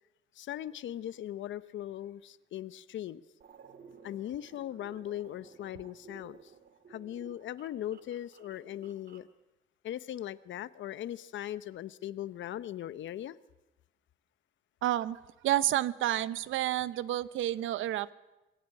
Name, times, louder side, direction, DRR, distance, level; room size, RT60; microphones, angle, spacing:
voice 1, 0.3-3.2 4.0-6.4 6.9-9.3 9.8-13.4, left 12 dB, 70° left, 15 dB, 0.9 m, -39 dB
sound 1, 3.4-9.3, right 6 dB, 55° right, 2.2 m, -56 dB
voice 2, 14.8-18.1, right 13 dB, 80° right, 16 dB, 0.8 m, -30 dB
22.5 x 15.5 x 9.8 m, 1.0 s
cardioid pair, 90°, 20 cm